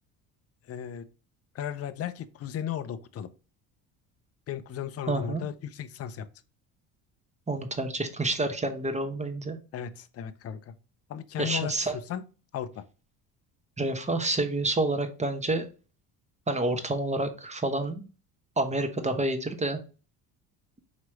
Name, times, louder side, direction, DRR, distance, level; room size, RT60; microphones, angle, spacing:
voice 1, 0.6-1.1 1.5-3.3 4.5-6.3 9.7-10.7 11.1-12.2 12.5-12.9, left 9 dB, 35° left, 0.5 m, -35 dB
voice 2, 5.1-5.4 7.5-9.6 11.4-11.9 13.8-15.7 16.5-18.1 18.6-19.8, right 2 dB, 15° right, 0.9 m, -28 dB
4.9 x 3.0 x 2.9 m
supercardioid pair, 70°, 47 cm